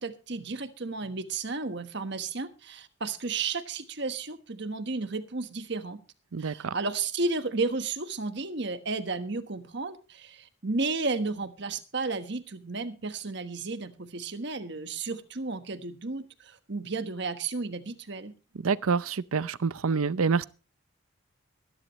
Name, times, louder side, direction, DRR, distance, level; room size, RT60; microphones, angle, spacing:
voice 1, 0.0-6.0 6.4-18.3, right 3 dB, 55° right, 1.3 m, -33 dB
voice 2, 6.3-6.7 18.6-20.4, right 5 dB, 90° right, 0.6 m, -27 dB
22.0 x 11.5 x 3.1 m
head